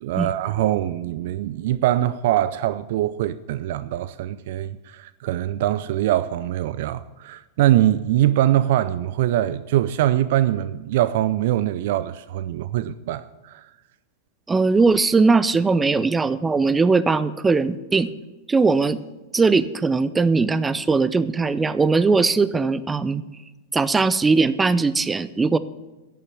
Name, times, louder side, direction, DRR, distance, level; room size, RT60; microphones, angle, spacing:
voice 1, 0.0-13.7, right 13 dB, 55° right, 0.5 m, -23 dB
voice 2, 14.5-18.1 18.5-19.0 19.3-23.2 23.7-25.6, right 4 dB, 15° right, 0.6 m, -19 dB
11.5 x 9.3 x 7.4 m
figure-of-eight pair, 95°, 0 cm